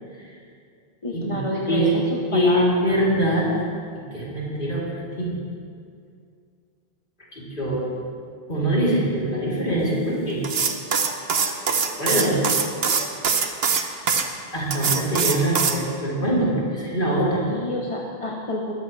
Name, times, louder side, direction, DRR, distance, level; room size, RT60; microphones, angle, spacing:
voice 1, 1.0-2.0 2.3-2.7 17.4-18.7, left 1 dB, 30° left, -2 dB, 1.2 m, -28 dB
voice 2, 2.3-3.5 4.1-5.3 7.3-7.9 8.5-10.4 12.0-12.4 14.5-17.5, right 1 dB, 55° left, -7 dB, 3.9 m, -23 dB
sound 1, 10.4-14.2 14.7-15.8, right 6 dB, 75° right, 1.2 m, -22 dB
22.0 x 13.0 x 3.4 m, 2.3 s
omnidirectional pair, 1.1 m